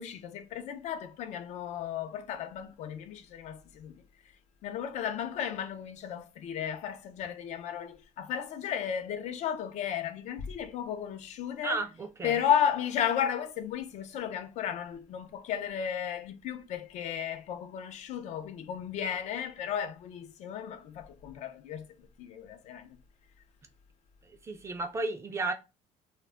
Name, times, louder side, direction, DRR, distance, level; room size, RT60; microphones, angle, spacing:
voice 1, 0.0-4.0 4.6-11.8 12.2-21.9 22.2-22.9, left 9 dB, 65° left, 0.4 m, -34 dB
voice 2, 11.6-12.4 24.4-25.5, right 3 dB, 20° right, 0.4 m, -33 dB
2.2 x 2.1 x 3.4 m
cardioid pair, 115°, 13 cm